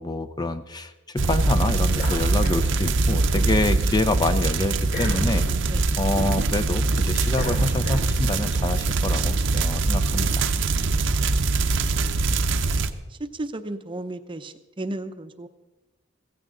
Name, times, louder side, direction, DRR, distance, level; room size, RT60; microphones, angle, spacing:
voice 1, 0.0-5.4 6.0-10.4, left 2 dB, 20° left, 11 dB, 0.5 m, -27 dB
sound 1, 1.2-12.9, right 3 dB, 70° right, 0.7 m, -23 dB
sound 2, 1.9-3.5 3.9-8.5, left 1 dB, 60° left, 3.1 m, -36 dB
voice 2, 13.3-15.5, right 2 dB, 25° right, 9 dB, 0.7 m, -35 dB
16.0 x 15.5 x 3.8 m, 1.1 s
head